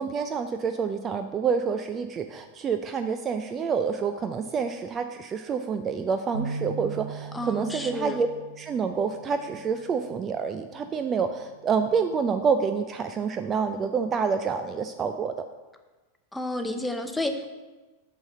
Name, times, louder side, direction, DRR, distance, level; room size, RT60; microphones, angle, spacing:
voice 1, 0.0-8.3 8.6-15.3, right 6 dB, 25° right, 7 dB, 0.4 m, -28 dB
sound 1, 6.3-12.6, right 4 dB, 85° left, 0.5 m, -41 dB
voice 2, 7.3-8.2 16.3-17.5, left 1 dB, 5° left, 6 dB, 0.8 m, -30 dB
6.4 x 6.2 x 6.6 m, 1.2 s
figure-of-eight pair, 90°, 0 cm